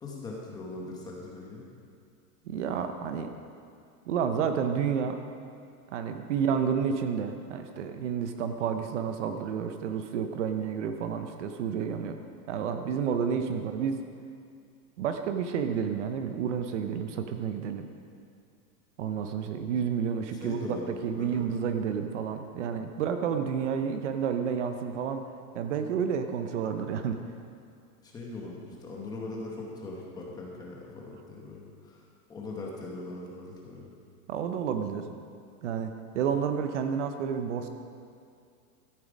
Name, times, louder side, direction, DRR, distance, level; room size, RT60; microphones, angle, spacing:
voice 1, 0.0-1.6 20.3-21.5 28.0-32.0 32.3-33.9, left 2 dB, 10° left, -3 dB, 1.0 m, -40 dB
voice 2, 2.5-3.3 4.1-5.2 5.9-12.2 12.5-14.0 15.0-17.9 19.0-25.3 25.5-27.2 34.3-35.1 35.6-37.7, right 7 dB, 50° right, 7 dB, 0.8 m, -30 dB
13.5 x 10.5 x 5.1 m, 2.4 s
supercardioid pair, 175°, 46 cm